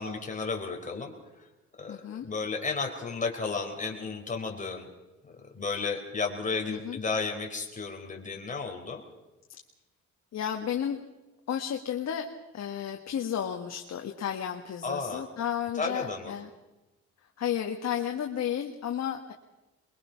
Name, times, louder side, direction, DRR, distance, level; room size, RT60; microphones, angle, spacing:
voice 1, 0.0-1.4 1.8-2.0 2.2-4.9 5.2-9.0 14.8-15.2 15.7-16.3, left 4 dB, 25° left, 1 dB, 4.0 m, -33 dB
voice 2, 1.9-2.3 6.7-7.0 9.5-9.6 10.3-11.0 11.5-16.5 17.4-19.3, left 9 dB, 60° left, 3 dB, 1.6 m, -33 dB
23.0 x 22.5 x 5.8 m, 1.1 s
cardioid pair, 90°, 30 cm